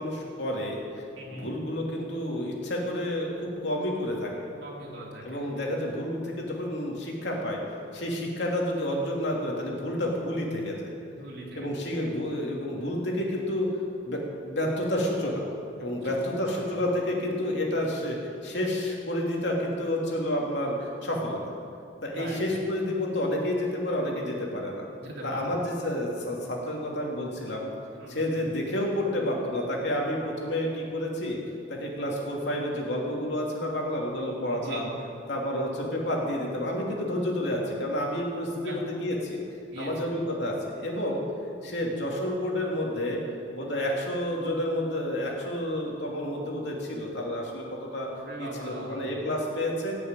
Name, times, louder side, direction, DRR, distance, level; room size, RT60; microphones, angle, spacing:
voice 1, 0.0-1.0 1.3-4.5 5.2-7.6 7.9-10.9 11.5-13.7 14.0-15.5 15.8-21.4 22.0-24.8 25.2-27.7 28.1-31.4 31.7-34.9 35.3-39.4 39.8-41.2 41.6-43.2 43.5-48.1 48.4-50.0, left 1 dB, 60° left, -2 dB, 2.8 m, -30 dB
voice 2, 1.1-1.5 4.6-5.4 11.1-11.7 16.2-16.7 22.1-22.4 25.0-25.5 28.0-28.4 34.5-34.8 38.6-38.8 39.7-39.9 48.0-49.1, right 1 dB, 60° right, -3 dB, 3.3 m, -40 dB
17.5 x 6.9 x 9.0 m, 2.6 s
head